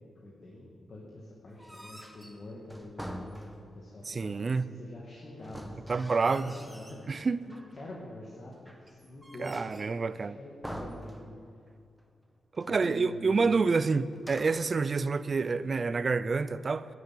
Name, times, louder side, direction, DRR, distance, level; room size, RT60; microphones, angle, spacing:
voice 1, 0.2-9.8 10.1-11.3 12.6-13.4, left 1 dB, 50° left, 2.2 m, -46 dB
sound 1, 1.5-3.9 5.4-7.1 7.5-8.1 8.6-10.0 10.6-11.7 12.0-12.1 12.5-13.1 14.1-14.8, equal, 5° right, 1.1 m, -45 dB
voice 2, 4.1-4.7 5.9-6.5 7.1-7.4 9.4-10.4 12.6-16.9, right 4 dB, 45° right, 0.5 m, -28 dB
10.5 x 8.2 x 8.7 m
cardioid pair, 65°, 0 cm